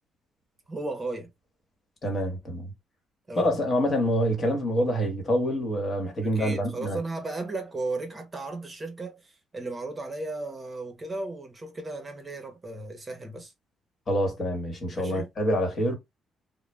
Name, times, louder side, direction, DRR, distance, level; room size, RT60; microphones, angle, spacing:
voice 1, 0.7-1.3 3.3-3.6 6.2-13.5 14.9-15.3, right 2 dB, 25° right, 0.8 m, -35 dB
voice 2, 2.0-2.7 3.4-7.0 14.1-15.9, equal, 40° left, 1.2 m, -26 dB
2.4 x 2.0 x 3.2 m
cardioid pair, 90°, 0 cm